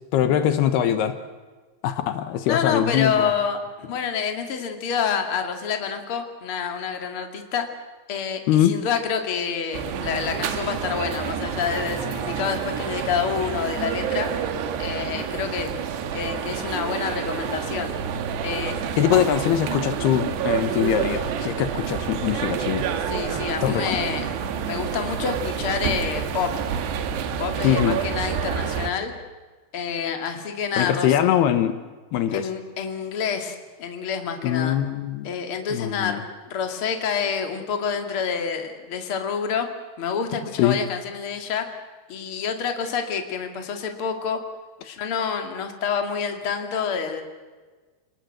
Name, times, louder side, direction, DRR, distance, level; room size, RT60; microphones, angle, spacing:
voice 1, 0.1-1.2 1.8-3.3 8.5-8.8 19.0-22.9 23.6-24.0 27.6-28.0 30.8-31.8 32.1-32.5 34.4-35.3 35.7-36.2 40.6-40.8, left 10 dB, 80° left, 10 dB, 3.1 m, -22 dB
voice 2, 2.4-7.7 8.1-14.3 14.8-15.7 16.1-17.9 18.4-18.8 23.1-26.5 27.4-29.1 29.7-31.1 32.3-34.8 35.2-39.7 40.0-41.7 42.1-44.4 44.8-47.2, left 6 dB, 40° left, 5 dB, 2.7 m, -28 dB
sound 1, 9.7-28.9, right 7 dB, 85° right, 3.8 m, -28 dB
28.5 x 19.5 x 8.0 m, 1.4 s
omnidirectional pair, 4.7 m